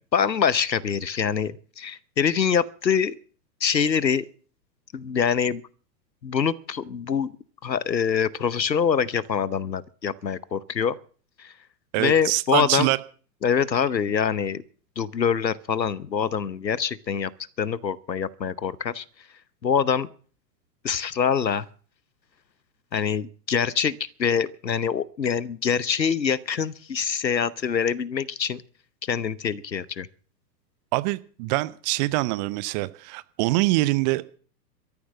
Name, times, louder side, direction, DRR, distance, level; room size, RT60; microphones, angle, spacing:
voice 1, 0.1-3.2 3.6-4.3 4.9-5.6 6.2-7.3 7.6-11.0 11.4-11.5 12.0-12.9 13.4-14.6 15.0-17.3 17.6-19.0 19.6-20.1 20.8-21.7 22.9-28.6 29.1-30.1, left 7 dB, 85° left, 1.0 m, -25 dB
voice 2, 11.9-13.0 30.9-34.4, right 20 dB, 25° right, 0.6 m, -24 dB
13.5 x 11.0 x 7.3 m
figure-of-eight pair, 100°, 50 cm